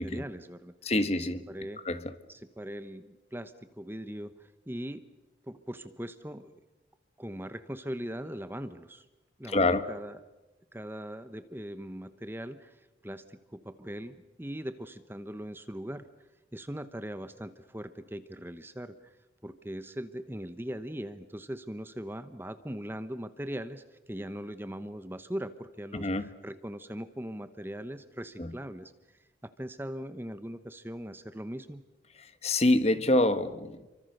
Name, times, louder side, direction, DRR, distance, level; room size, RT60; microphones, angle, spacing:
voice 1, 0.0-0.7 1.5-1.8 2.3-5.1 5.4-6.6 7.2-9.1 9.4-10.2 10.7-16.1 16.5-19.2 19.4-31.8, equal, 10° right, 11 dB, 1.0 m, -40 dB
voice 2, 0.8-1.5 1.8-2.1 9.5-9.8 25.9-26.3 28.4-28.5 32.2-33.9, left 2 dB, 35° left, 11 dB, 1.5 m, -26 dB
30.0 x 24.5 x 6.7 m, 1.1 s
head